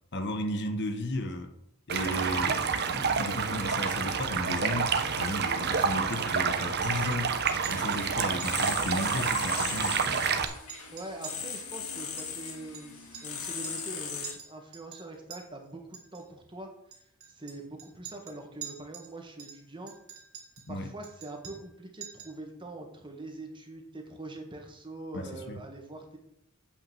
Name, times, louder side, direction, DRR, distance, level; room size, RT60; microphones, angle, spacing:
voice 1, 0.1-1.5 1.9-7.3 7.7-10.2 20.7-20.9 25.1-25.6, left 1 dB, 55° left, 1.1 m, -34 dB
Stream, 1.9-10.4, right 6 dB, 50° right, 0.9 m, -28 dB
Chink clink, 6.7-6.8 7.0-7.2 7.5-8.0 8.4-8.7 9.0-9.1 9.5-10.2 10.5-13.4 13.6-13.9 14.2-15.4 15.9-16.2 16.9-19.1 19.4-20.7 21.0-21.7 22.0-22.4, right 9 dB, 75° right, 2.4 m, -47 dB
sound 1, 7.9-14.3, left 6 dB, 85° left, 2.0 m, -38 dB
voice 2, 10.9-16.7 17.3-19.9 20.7-26.2, right 2 dB, 25° right, 1.7 m, -43 dB
8.8 x 5.5 x 7.0 m
head